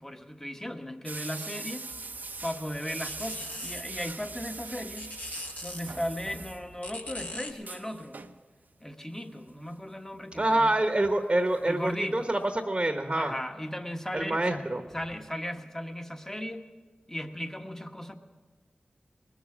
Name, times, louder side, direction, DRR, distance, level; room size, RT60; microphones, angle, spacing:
voice 1, 0.0-1.9 2.4-5.1 5.6-8.2 8.8-10.8 11.7-12.3 13.1-16.7 17.1-18.2, equal, 15° left, 6 dB, 1.2 m, -36 dB
sound 1, 1.1-6.9 7.2-7.3 7.5-8.4 9.5-9.7 10.3-11.6 11.9-12.0 12.4-12.5, right 3 dB, 60° right, 0.7 m, -42 dB
sound 2, 1.9-7.5, left 2 dB, 50° left, 1.7 m, -43 dB
voice 2, 10.4-13.3 14.1-14.8, right 1 dB, 30° right, 6 dB, 1.0 m, -26 dB
19.5 x 7.2 x 8.4 m, 1.5 s
cardioid pair, 40°, 3 cm